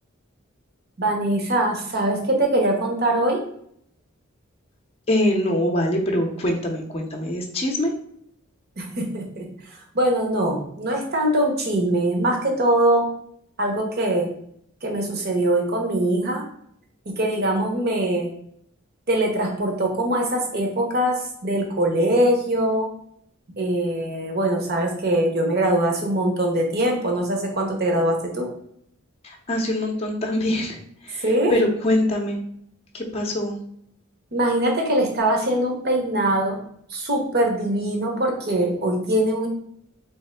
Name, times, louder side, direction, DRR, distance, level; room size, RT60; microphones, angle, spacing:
voice 1, 1.0-3.4 8.8-13.0 13.6-14.3 14.8-16.4 17.2-18.3 19.1-22.9 23.6-28.5 31.2-31.5 34.3-36.6 36.9-39.5, right 1 dB, 50° right, 2 dB, 0.9 m, -22 dB
voice 2, 5.1-7.9 29.2-30.8 31.0-31.2 31.5-32.4 32.9-33.6, left 1 dB, 30° left, 2 dB, 0.6 m, -23 dB
3.5 x 3.3 x 3.3 m, 0.69 s
head